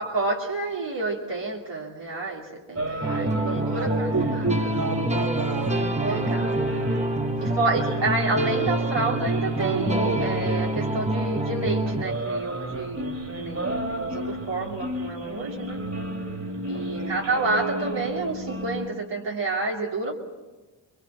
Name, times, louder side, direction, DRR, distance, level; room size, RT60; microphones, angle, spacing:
voice 1, 0.0-4.4 6.1-6.5 7.4-13.1 13.4-15.8 16.7-20.1, right 2 dB, 75° right, -3 dB, 3.0 m, -29 dB
sound 1, 2.8-18.9, right 1 dB, 35° right, 3.0 m, -33 dB
sound 2, 3.0-12.0, right 2 dB, 15° right, 1.4 m, -27 dB
voice 2, 3.0-7.6 16.9-17.2, right 2 dB, 50° right, 5 dB, 3.4 m, -33 dB
26.5 x 22.5 x 7.4 m, 1.2 s
cardioid pair, 55°, 44 cm